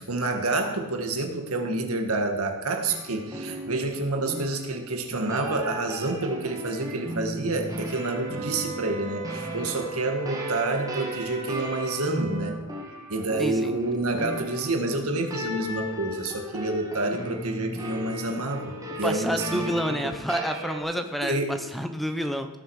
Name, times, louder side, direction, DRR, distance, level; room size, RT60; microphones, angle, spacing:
voice 1, 0.0-12.6 13.1-20.1 21.2-21.6, right 2 dB, 80° right, 4 dB, 1.8 m, -28 dB
sound 1, 2.9-20.8, equal, 15° right, 1.9 m, -37 dB
Wind instrument woodwind instrument, 8.0-12.6, right 5 dB, 30° right, 1.4 m, -38 dB
voice 2, 13.4-13.7 18.9-22.5, equal, ahead, 6 dB, 0.7 m, -29 dB
18.0 x 7.2 x 4.8 m, 1.2 s
head